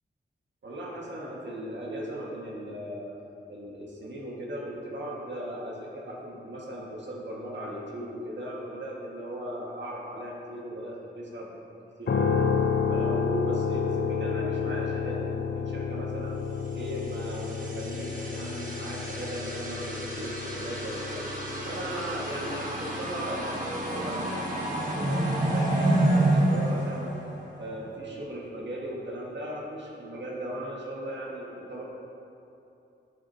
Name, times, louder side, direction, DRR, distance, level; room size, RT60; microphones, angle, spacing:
voice 1, 0.6-3.2 3.5-11.5 12.0-12.5 12.9-16.4 16.7-21.2 21.6-27.1 27.6-31.8, right 1 dB, 65° right, -3 dB, 1.6 m, -37 dB
sound 1, 12.1-26.1, left 6 dB, 60° left, 0.5 m, -31 dB
sound 2, 17.0-27.7, right 1 dB, 40° right, 1.5 m, -29 dB
10.0 x 7.5 x 2.8 m, 2.8 s
wide cardioid pair, 85°, 20 cm